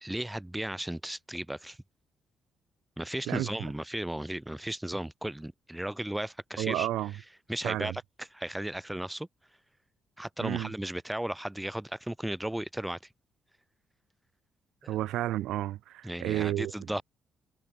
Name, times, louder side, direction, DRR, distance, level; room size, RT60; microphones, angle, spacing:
voice 1, 0.0-1.8 3.0-6.9 7.5-9.3 10.2-13.0 14.8-15.0 16.0-17.0, right 1 dB, 5° right, 0.6 m, -35 dB
voice 2, 6.6-7.1 7.6-8.0 10.4-10.7 14.9-16.7, right 14 dB, 85° right, 0.5 m, -31 dB
cardioid pair, 90°, 0 cm